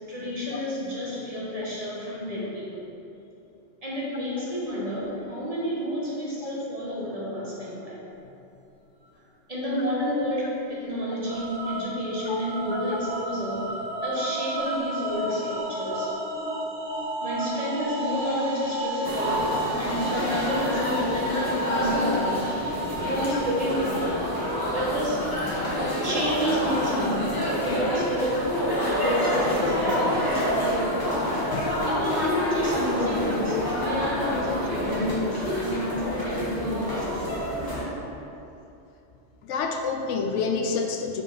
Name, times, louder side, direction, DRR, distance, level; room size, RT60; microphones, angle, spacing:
voice 1, 0.1-2.9 3.8-8.0 9.5-13.7 14.0-16.1 17.2-24.3 24.7-25.4 26.0-28.4 29.0-31.1 31.8-37.2, equal, 30° right, -6 dB, 1.5 m, -30 dB
sound 1, 11.3-28.0, right 1 dB, 75° right, 1.6 m, -33 dB
sound 2, 19.0-37.8, equal, 20° left, 1.5 m, -27 dB
voice 2, 31.5-31.8 39.4-41.2, left 5 dB, 85° left, 4 dB, 1.0 m, -28 dB
6.1 x 4.8 x 5.0 m, 2.8 s
omnidirectional pair, 1.2 m